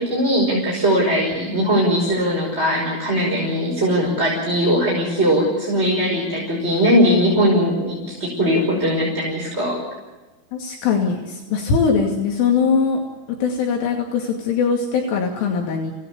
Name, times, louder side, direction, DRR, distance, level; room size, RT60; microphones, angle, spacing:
voice 1, 0.0-9.8, equal, 10° right, -3 dB, 5.3 m, -20 dB
voice 2, 10.5-13.0 13.4-15.9, left 5 dB, 75° left, 1 dB, 4.9 m, -21 dB
29.0 x 18.0 x 8.5 m, 1.2 s
omnidirectional pair, 5.8 m